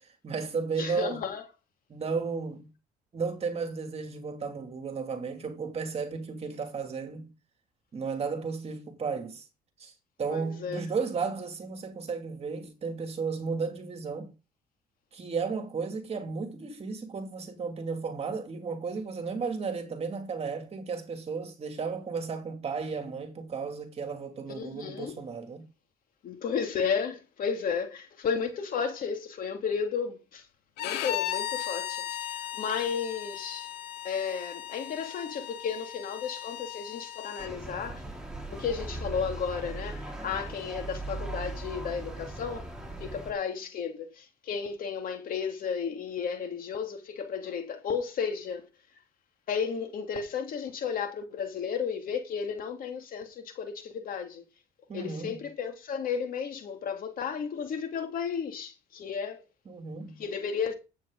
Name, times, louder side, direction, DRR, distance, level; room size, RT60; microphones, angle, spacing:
voice 1, 0.2-1.2 1.9-2.7 3.1-7.3 7.9-9.4 9.8-9.9 10.2-14.3 15.1-25.6 54.9-55.4 59.7-60.2, right 5 dB, 40° right, 2.6 m, -34 dB
voice 2, 0.8-1.4 10.3-10.8 24.5-25.1 26.2-30.4 30.8-33.7 34.0-38.0 38.5-42.6 43.0-48.7 49.5-54.4 54.9-59.4 60.2-60.7, left 6 dB, 55° left, 2.7 m, -33 dB
Bowed string instrument, 30.8-37.5, left 12 dB, 90° left, 1.3 m, -36 dB
sound 1, 37.4-43.3, right 2 dB, 5° right, 4.3 m, -39 dB
11.5 x 8.5 x 3.9 m
cardioid pair, 110°, 17 cm